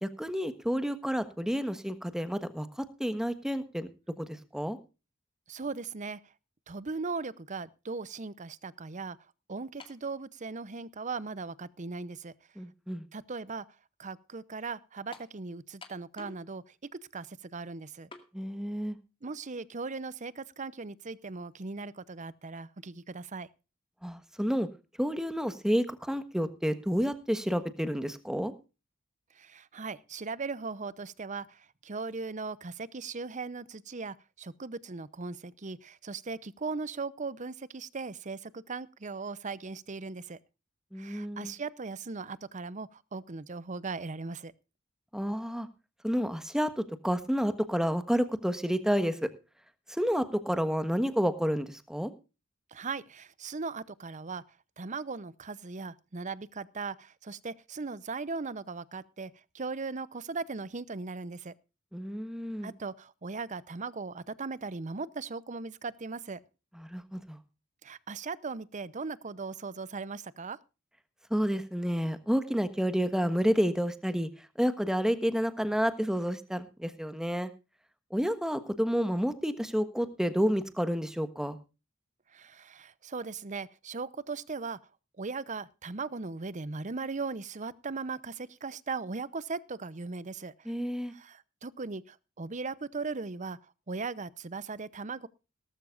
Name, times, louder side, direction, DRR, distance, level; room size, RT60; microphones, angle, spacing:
voice 1, 0.0-2.7 3.0-3.9 4.2-4.8 12.6-13.0 18.3-19.0 24.0-24.7 25.0-28.5 40.9-41.5 45.1-45.7 46.0-49.3 49.9-52.1 61.9-62.7 66.8-67.4 71.3-74.3 74.6-77.5 78.1-81.6 90.7-91.1, equal, 5° right, 11 dB, 1.3 m, -30 dB
voice 2, 5.5-6.2 6.7-9.2 9.5-12.3 13.1-13.6 14.0-16.6 17.1-18.1 19.2-23.5 29.4-40.4 41.0-44.5 52.7-54.4 54.8-61.5 62.6-66.4 67.8-70.6 82.3-84.8 85.2-90.7 91.1-93.6 93.9-95.3, right 4 dB, 40° right, 19 dB, 0.7 m, -38 dB
sound 1, 9.8-10.1 11.0-11.1 15.1-15.4 15.8-16.5 16.7-16.8 18.1-18.3, left 3 dB, 25° left, 2.1 m, -49 dB
18.0 x 14.0 x 2.5 m, 0.30 s
head